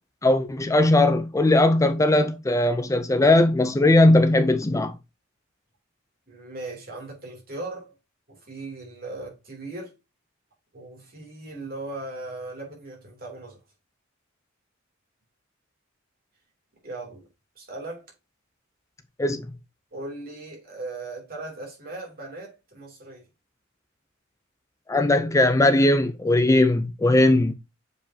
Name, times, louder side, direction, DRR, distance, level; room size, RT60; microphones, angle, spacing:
voice 1, 0.2-4.9 19.2-19.5 24.9-27.5, left 2 dB, 15° left, 0.4 m, -19 dB
voice 2, 6.3-7.9 8.3-10.0 10.7-13.6 16.8-17.3 17.5-18.0 19.9-23.3, right 2 dB, 45° right, 3.0 m, -38 dB
7.4 x 5.0 x 2.8 m
head